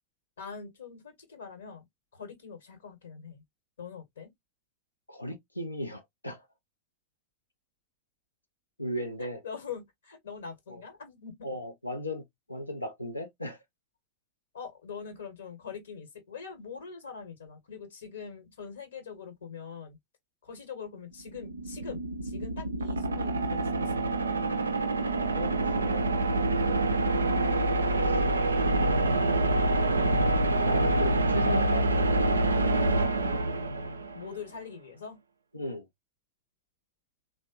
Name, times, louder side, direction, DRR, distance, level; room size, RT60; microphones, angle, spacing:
voice 1, 0.4-1.8 2.1-3.4 3.8-4.3 9.2-11.5 14.5-20.0 20.4-23.9 24.2-24.7 34.1-35.2, left 6 dB, 65° left, 1.1 m, -43 dB
voice 2, 5.1-6.5 8.8-9.4 10.7-10.8 11.4-13.6 25.3-27.6 28.0-28.2 29.0-29.5 30.6-32.4 35.5-35.9, left 1 dB, 85° left, 0.5 m, -37 dB
sound 1, 21.2-34.3, right 2 dB, 75° right, 0.3 m, -26 dB
3.4 x 2.1 x 2.7 m
figure-of-eight pair, 90°, 0 cm